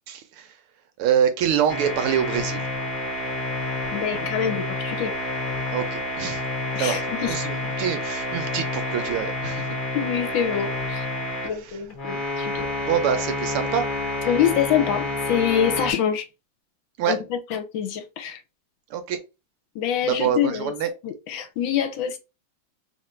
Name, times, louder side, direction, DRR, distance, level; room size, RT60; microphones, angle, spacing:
voice 1, 0.1-0.5 1.0-2.7 5.7-6.4 6.8-9.8 11.4-11.8 12.1-12.2 12.9-13.9 17.0-17.2 18.9-19.2 20.0-20.9, right 8 dB, 85° right, 1.7 m, -25 dB
sound 1, 1.7-11.5 11.9-15.9, left 2 dB, 35° left, 0.8 m, -29 dB
voice 2, 3.9-5.1 6.7-7.4 9.9-11.1 11.4-12.7 14.3-16.3 17.1-18.4 19.7-20.7 21.0-22.2, left 9 dB, 75° left, 1.3 m, -25 dB
3.7 x 2.5 x 4.3 m
omnidirectional pair, 2.3 m